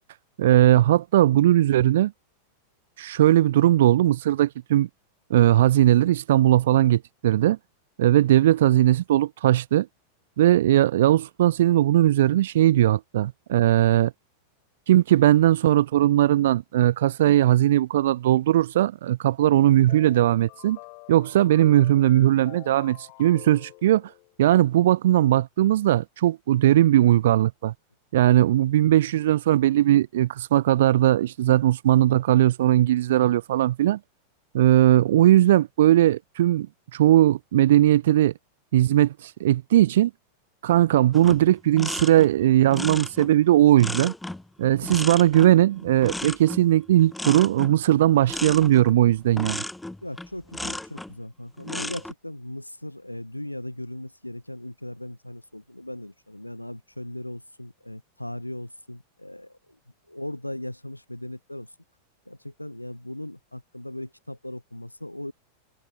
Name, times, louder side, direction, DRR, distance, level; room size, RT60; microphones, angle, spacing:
voice 1, 0.4-2.1 3.0-4.9 5.3-7.6 8.0-9.9 10.4-14.1 14.9-20.8 21.1-24.1 24.4-27.7 28.1-34.0 34.5-36.7 36.9-38.3 38.7-40.1 40.6-44.1 44.6-49.6, right 13 dB, 60° right, 0.4 m, -19 dB
sound 1, 19.4-24.4, left 35 dB, 45° left, 5.0 m, -47 dB
sound 2, 41.1-51.1 51.6-52.1, left 1 dB, 5° left, 2.1 m, -35 dB
voice 2, 50.0-59.8 60.1-61.7 62.3-65.3, left 1 dB, 85° left, 1.2 m, -38 dB
figure-of-eight pair, 90°, 0 cm